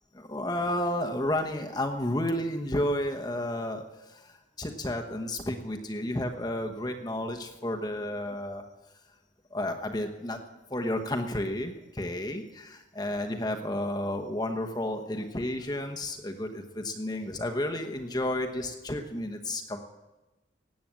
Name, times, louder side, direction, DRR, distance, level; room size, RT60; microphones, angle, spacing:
voice 1, 0.1-3.8 4.1-8.6 9.5-10.4 10.7-19.8, left 1 dB, 20° left, 4 dB, 1.0 m, -32 dB
18.0 x 8.5 x 7.5 m, 1.1 s
head